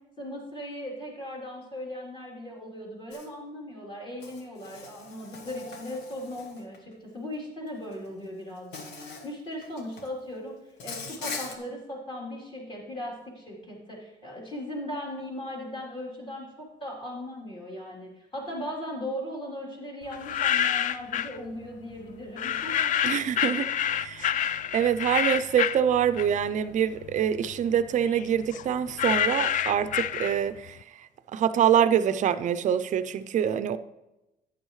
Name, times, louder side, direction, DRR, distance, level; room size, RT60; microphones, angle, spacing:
voice 1, 0.2-10.6 10.8-22.9 23.3-23.6, left 1 dB, 30° left, 3.4 m, -38 dB
Insect, 3.1-3.3 4.2-6.8 7.9-8.1 8.7-9.3 9.6-10.1 10.8-11.6, left 4 dB, 80° left, 1.4 m, -40 dB
sound 1, 20.1-21.4 22.4-26.6 27.0-30.7, left 9 dB, 50° left, 0.4 m, -28 dB
voice 2, 23.0-23.7 23.9-24.4 24.7-33.8, right 9 dB, 45° right, 0.5 m, -25 dB
12.0 x 8.9 x 3.2 m
cardioid pair, 110°, 17 cm